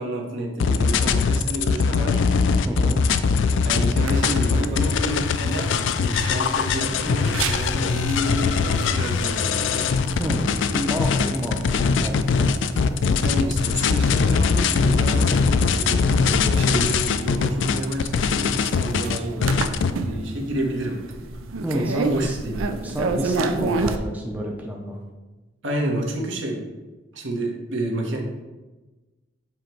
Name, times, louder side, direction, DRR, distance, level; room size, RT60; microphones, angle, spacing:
voice 1, 0.0-2.2 3.6-9.9 13.2-19.7 19.9-21.0 21.7-23.0 25.6-26.6 27.1-28.2, right 1 dB, 70° right, -1 dB, 1.2 m, -29 dB
sound 1, 0.6-19.9, left 5 dB, 65° left, 0.3 m, -21 dB
voice 2, 2.6-3.0 10.2-12.5 21.6-22.4 22.8-25.0, equal, 10° right, -1 dB, 0.5 m, -29 dB
sound 2, 4.0-24.0, right 3 dB, 90° right, 0.5 m, -33 dB
7.5 x 3.0 x 4.5 m, 1.2 s
head